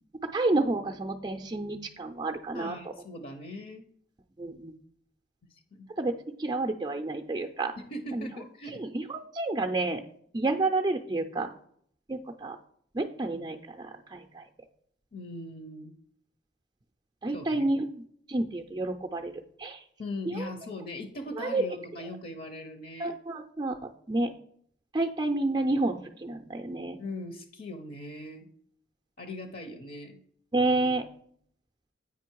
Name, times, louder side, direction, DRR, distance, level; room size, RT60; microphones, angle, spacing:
voice 1, 0.3-2.8 4.4-4.7 6.0-6.1 6.4-7.7 8.1-8.3 8.9-10.0 10.3-11.5 12.1-12.6 12.9-14.4 17.2-17.9 18.3-19.3 19.6-19.8 20.3-20.5 21.4-21.6 23.0-23.8 24.1-24.3 24.9-27.0 30.5-31.0, right 2 dB, 20° right, 3 dB, 0.4 m, -29 dB
voice 2, 2.5-3.8 5.5-5.9 7.8-8.8 15.1-15.9 17.3-17.8 20.0-23.1 27.0-28.5 29.2-30.2, left 1 dB, 55° left, 7 dB, 0.7 m, -40 dB
8.3 x 5.1 x 4.5 m, 0.65 s
head